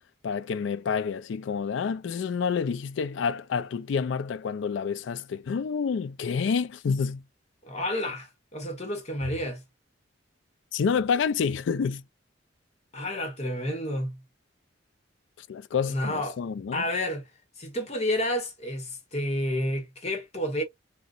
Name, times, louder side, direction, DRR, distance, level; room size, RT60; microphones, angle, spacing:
voice 1, 0.2-7.2 10.7-12.0 15.4-16.8, left 6 dB, 70° left, 0.3 m, -28 dB
voice 2, 7.6-9.6 12.9-14.2 15.9-16.4 16.7-17.2 17.6-20.6, left 1 dB, 35° left, 1.0 m, -30 dB
3.9 x 2.2 x 2.4 m
head